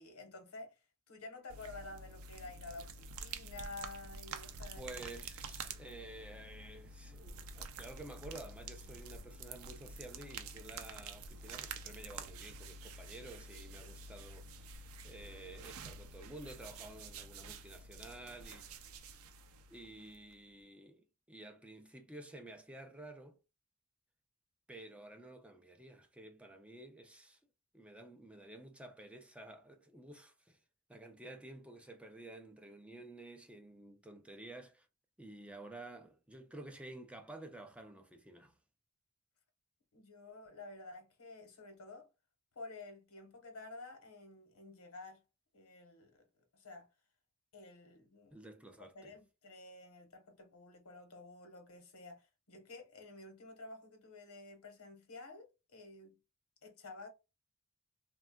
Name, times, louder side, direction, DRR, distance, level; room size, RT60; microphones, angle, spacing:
voice 1, 0.0-5.1 39.9-42.1 42.5-45.2 45.5-46.3 46.5-46.9 47.5-48.4 48.6-56.2 56.6-57.1, left 2 dB, 80° left, 1.0 m, -51 dB
sound 1, 1.5-20.4, right 4 dB, 70° right, 0.4 m, -48 dB
voice 2, 4.8-18.8 19.7-23.4 24.7-27.4 27.7-30.6 30.9-34.9 35.2-38.6 48.3-49.2, right 2 dB, 5° right, 0.3 m, -51 dB
3.4 x 2.2 x 2.2 m
head